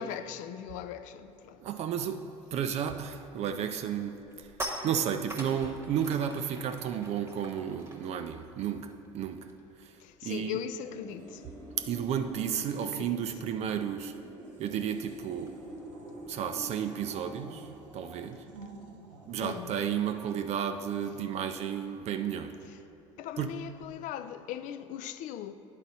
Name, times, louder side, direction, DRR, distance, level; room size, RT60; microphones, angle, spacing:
voice 1, 0.0-1.6 10.0-11.4 12.8-13.4 19.4-19.7 22.6-22.8 23.2-25.5, left 10 dB, 55° left, 0.4 m, -39 dB
voice 2, 1.6-4.5 4.8-9.5 9.8-10.0 10.2-10.6 11.8-14.1 14.6-15.6 16.3-18.4 19.3-22.6 23.4-23.6, right 8 dB, 45° right, 0.4 m, -33 dB
sound 1, 4.2-9.8 10.0-10.3 10.6-15.6, right 1 dB, 15° right, 1.1 m, -45 dB
Wind, 10.8-19.5, right 1 dB, 10° left, 1.4 m, -47 dB
sound 2, 11.2-13.3 14.4-20.8 21.7-22.0, right 3 dB, 85° right, 0.7 m, -53 dB
9.9 x 4.0 x 4.1 m
hypercardioid pair, 75°, 16 cm